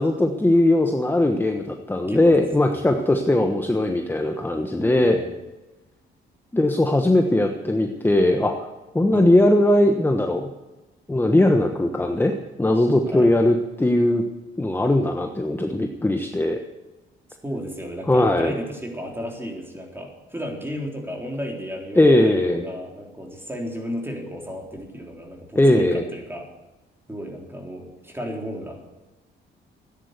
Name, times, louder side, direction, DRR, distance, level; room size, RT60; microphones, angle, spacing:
voice 1, 0.0-5.2 6.5-8.7 8.9-10.5 11.1-14.2 14.6-16.6 18.1-18.5 22.0-22.6 25.5-26.0, left 1 dB, 10° left, 5 dB, 1.2 m, -19 dB
voice 2, 4.8-5.3 9.1-9.3 13.1-13.4 17.4-26.5 27.1-28.8, equal, 10° right, 1 dB, 3.7 m, -34 dB
13.5 x 10.0 x 8.2 m, 1.1 s
cardioid pair, 90°, 20 cm